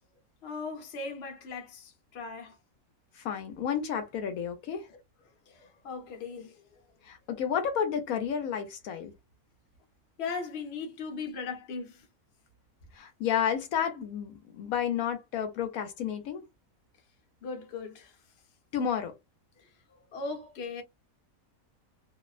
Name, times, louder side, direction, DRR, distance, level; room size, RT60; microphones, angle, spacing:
voice 1, 0.4-2.6 4.9-5.0 5.5-6.8 10.2-12.1 17.4-18.2 19.6-19.7 20.1-20.8, left 4 dB, 55° left, 0.9 m, -38 dB
voice 2, 3.2-4.9 7.0-9.1 12.9-16.5 18.7-19.1, left 8 dB, 80° left, 1.0 m, -31 dB
2.7 x 2.0 x 2.3 m
omnidirectional pair, 1.5 m